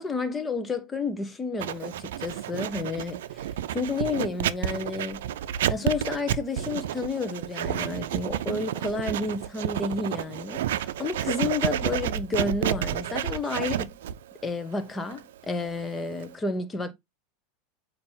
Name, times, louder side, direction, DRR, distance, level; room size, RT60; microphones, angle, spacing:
voice 1, 0.0-5.2 5.7-13.9 14.4-16.9, left 3 dB, 15° left, 1.1 m, -31 dB
Writing, 1.6-16.3, right 11 dB, 85° right, 0.5 m, -30 dB
8.6 x 2.9 x 3.9 m
supercardioid pair, 145°, 0 cm